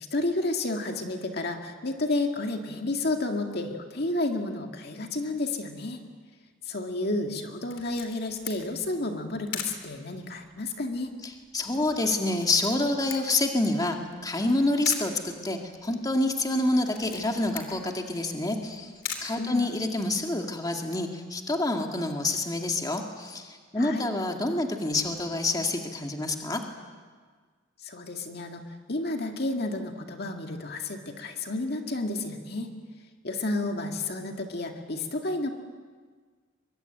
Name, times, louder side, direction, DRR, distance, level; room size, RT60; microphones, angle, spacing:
voice 1, 0.1-6.0 6.7-11.1 19.4-19.6 23.8-24.1 27.8-28.6 28.9-32.7 33.2-35.5, left 2 dB, 55° left, 3 dB, 2.1 m, -31 dB
Camera, 7.7-20.2, left 7 dB, 90° left, 3.3 m, -42 dB
voice 2, 11.2-18.9 19.2-26.6, left 2 dB, 20° left, 3 dB, 2.1 m, -27 dB
23.5 x 23.5 x 9.1 m, 1.5 s
head